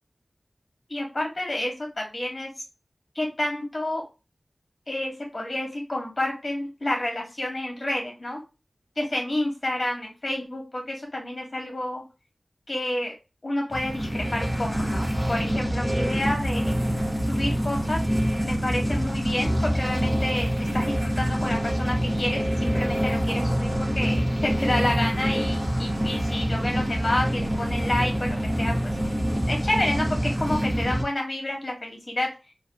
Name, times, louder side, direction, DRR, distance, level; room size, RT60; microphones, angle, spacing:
voice 1, 0.9-2.5 3.1-4.0 4.9-8.4 9.0-12.0 12.7-13.1 13.4-16.7 17.3-18.0 18.4-28.7 29.5-32.3, left 1 dB, 40° left, 1 dB, 1.7 m, -29 dB
sound 1, 13.7-31.0, equal, 25° right, 1.4 m, -26 dB
4.0 x 2.8 x 3.0 m, 0.29 s
wide cardioid pair, 70°, 0 cm